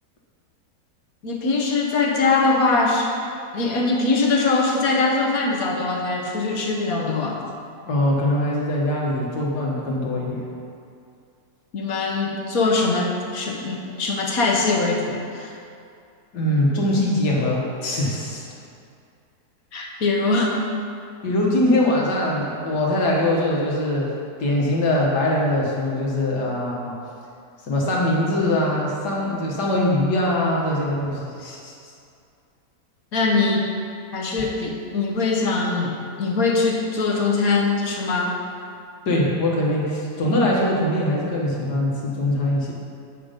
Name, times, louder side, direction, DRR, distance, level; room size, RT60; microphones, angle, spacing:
voice 1, 1.2-3.1 3.5-7.4 11.7-15.6 19.7-20.6 33.1-33.7 34.1-38.3, left 3 dB, 60° left, 0 dB, 1.4 m, -22 dB
voice 2, 7.9-10.4 16.3-18.5 21.2-24.1 24.4-27.0 27.6-31.9 39.1-42.7, left 1 dB, 80° left, -3 dB, 2.0 m, -22 dB
8.7 x 5.8 x 5.2 m, 2.5 s
omnidirectional pair, 1.7 m